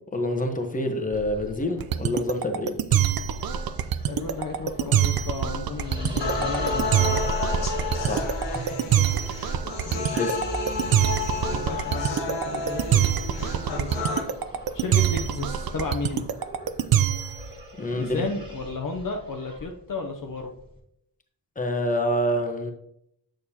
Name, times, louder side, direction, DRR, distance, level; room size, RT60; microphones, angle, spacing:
voice 1, 0.1-2.7 8.1-8.8 10.1-10.4 17.8-18.2 21.6-22.7, left 1 dB, 20° left, 4 dB, 1.0 m, -27 dB
sound 1, 1.1-20.8, equal, 10° right, 1.9 m, -39 dB
sound 2, 1.8-17.4, right 10 dB, 50° right, 0.5 m, -24 dB
voice 2, 4.1-7.2 9.8-10.3 11.5-13.1 13.6-14.1 14.7-16.3 17.9-20.5, left 3 dB, 45° left, 2 dB, 0.8 m, -33 dB
sound 3, 6.2-14.2, left 3 dB, 75° left, 1.4 m, -31 dB
6.7 x 6.3 x 2.8 m, 0.76 s
cardioid pair, 70°, 45 cm